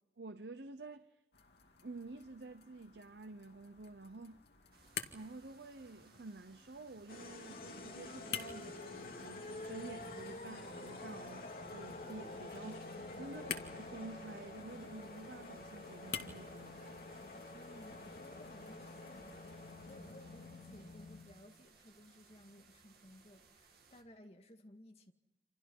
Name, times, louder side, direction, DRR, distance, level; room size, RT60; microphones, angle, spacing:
voice 1, 0.2-1.2 1.8-4.4 5.1-17.0, right 3 dB, 75° right, 0.8 m, -50 dB
sound 1, 1.3-20.3, left 7 dB, 70° left, 2.1 m, -51 dB
sound 2, 4.7-24.0, right 5 dB, 60° right, 2.5 m, -66 dB
sound 3, 7.1-21.3, left 2 dB, 55° left, 2.8 m, -48 dB
voice 2, 13.2-13.6 17.5-25.1, left 1 dB, 35° left, 2.0 m, -59 dB
28.5 x 27.5 x 5.5 m
head